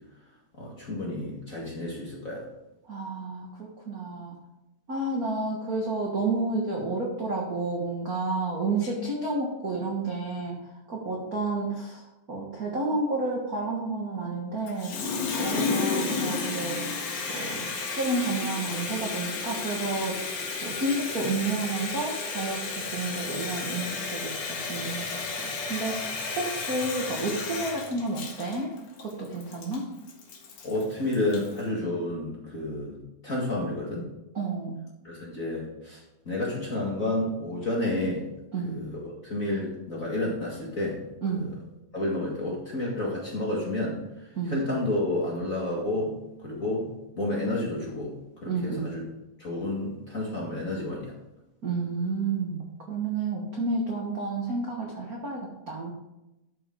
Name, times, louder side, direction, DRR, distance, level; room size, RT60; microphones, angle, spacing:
voice 1, 0.6-2.4 30.6-33.0 33.2-34.1 35.0-36.0 36.3-38.2 38.6-41.0 41.3-41.5 41.9-44.0 44.5-46.1 46.4-48.1 48.4-49.0 49.4-51.1, left 1 dB, 30° left, -4 dB, 1.7 m, -30 dB
voice 2, 2.9-4.4 4.9-10.6 10.9-12.0 12.3-15.0 15.4-16.9 17.3-22.6 22.9-28.7 29.0-29.8 34.3-34.8 38.5-38.8 41.2-41.5 44.3-44.6 48.4-48.9 51.6-55.9, right 3 dB, 50° right, -2 dB, 1.1 m, -30 dB
Water tap faucet, 14.7-31.6, left 4 dB, 85° left, 3.3 m, -32 dB
12.0 x 6.9 x 3.8 m, 0.95 s
omnidirectional pair, 3.9 m